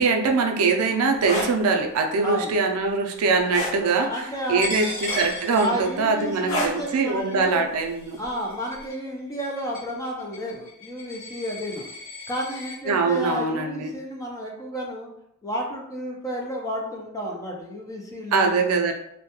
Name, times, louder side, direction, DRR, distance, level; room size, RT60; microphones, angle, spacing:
voice 1, 0.0-4.1 4.5-8.2 12.9-13.9 18.3-18.9, right 4 dB, 75° right, 3 dB, 0.4 m, -22 dB
sound 1, 1.1-1.5 3.5-3.8 5.1-5.5 6.5-6.8 8.2-8.4, equal, 65° left, 0.6 m, -28 dB
voice 2, 2.2-2.6 3.8-4.8 5.6-7.6 8.2-11.9 12.3-15.1 15.4-18.9, equal, 15° left, -1 dB, 0.4 m, -31 dB
Coin (dropping), 4.6-12.8, left 2 dB, 40° left, 1.0 m, -37 dB
2.2 x 2.1 x 2.8 m, 0.77 s
head